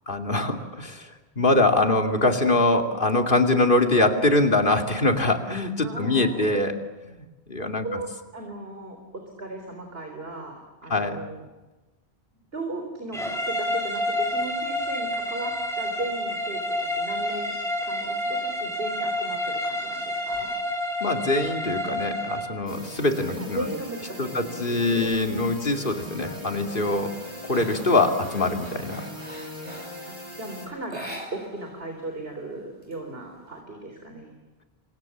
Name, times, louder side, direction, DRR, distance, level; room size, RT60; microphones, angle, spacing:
voice 1, 0.1-7.9 10.9-11.2 21.0-23.7 24.2-27.1 27.4-29.0, left 2 dB, 55° left, 4 dB, 2.8 m, -23 dB
voice 2, 5.8-6.5 7.8-11.4 12.5-13.2 13.5-17.5 17.8-20.5 23.3-25.1 30.1-34.3, right 2 dB, 65° right, 3 dB, 4.2 m, -37 dB
sound 1, 13.1-22.6, left 1 dB, 5° left, 4.8 m, -29 dB
sound 2, 22.7-30.7, equal, 50° right, 7.1 m, -40 dB
sound 3, 26.2-26.3 26.7-30.1 30.8-32.1 32.5-33.5, equal, 30° right, 5.8 m, -42 dB
28.5 x 25.0 x 7.3 m, 1.1 s
omnidirectional pair, 1.1 m